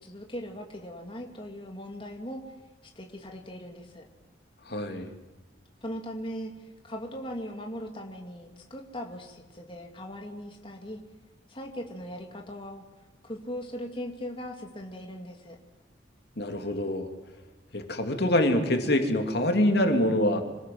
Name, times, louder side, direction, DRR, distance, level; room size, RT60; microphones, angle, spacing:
voice 1, 0.0-2.4 3.0-4.0 5.8-11.0 11.5-12.8 13.2-15.6, equal, 30° left, 2 dB, 2.6 m, -39 dB
voice 2, 4.7-5.1 16.4-17.1 17.7-20.4, left 1 dB, 60° left, 5 dB, 2.8 m, -25 dB
27.0 x 19.5 x 7.9 m, 1.2 s
head